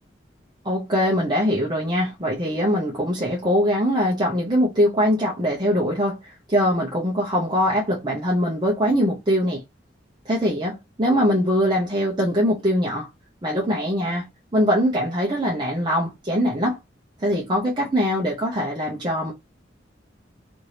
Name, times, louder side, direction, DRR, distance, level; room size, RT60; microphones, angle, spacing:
voice 1, 0.6-9.6 10.3-13.1 13.4-14.2 14.5-16.8 17.2-19.3, equal, 25° right, 0.7 m, -22 dB
2.8 x 2.6 x 3.2 m
head